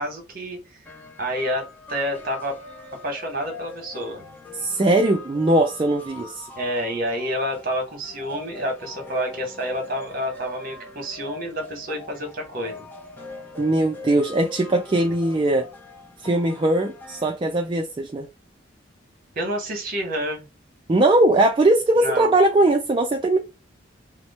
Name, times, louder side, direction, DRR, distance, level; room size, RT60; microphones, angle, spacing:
voice 1, 0.0-1.6 1.9-2.5 3.0-4.2 6.5-12.9 19.3-20.4 22.0-22.3, equal, 50° right, 1.2 m, -29 dB
sound 1, 0.9-17.3, left 2 dB, 10° left, 0.7 m, -41 dB
voice 2, 4.6-6.5 13.6-15.7 16.2-18.3 20.9-23.4, right 1 dB, 25° right, 0.3 m, -20 dB
2.9 x 2.0 x 4.0 m
head